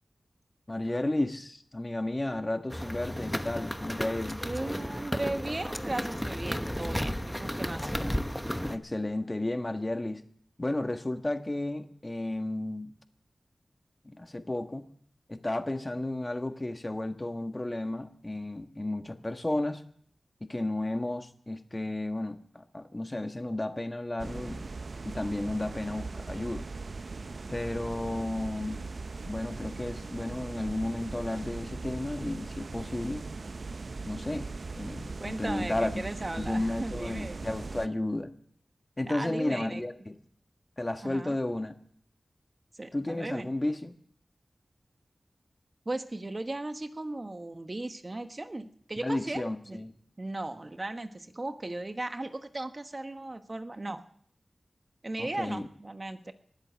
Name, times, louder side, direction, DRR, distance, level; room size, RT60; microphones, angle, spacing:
voice 1, 0.7-4.4 8.7-10.2 10.6-12.9 14.0-14.8 15.3-19.8 20.4-24.7 25.0-26.7 27.5-28.8 29.3-33.2 34.0-34.5 34.7-35.9 36.4-38.3 39.0-40.1 40.8-41.7 42.9-44.0 49.0-49.9 55.2-55.7, left 1 dB, 30° left, 8 dB, 1.4 m, -33 dB
sound 1, 2.7-8.8, equal, 5° left, 1.0 m, -33 dB
voice 2, 4.4-7.9 35.2-37.4 39.0-39.8 41.0-41.4 42.7-43.5 45.8-49.8 50.2-54.0 55.0-56.3, right 2 dB, 40° right, 9 dB, 1.3 m, -37 dB
sound 2, 24.2-37.9, right 3 dB, 65° right, 0.6 m, -40 dB
19.5 x 8.1 x 8.1 m, 0.63 s
cardioid pair, 45°, 0 cm